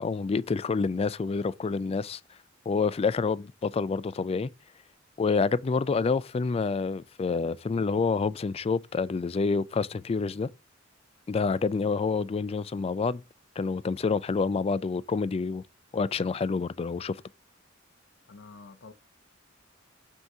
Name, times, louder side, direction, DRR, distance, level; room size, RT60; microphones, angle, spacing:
voice 1, 0.0-2.2 2.7-4.5 5.2-10.5 11.3-13.2 13.6-15.6 15.9-17.2, left 4 dB, 30° left, 0.3 m, -28 dB
voice 2, 18.3-18.9, left 4 dB, 65° left, 0.6 m, -48 dB
8.0 x 2.9 x 4.7 m
head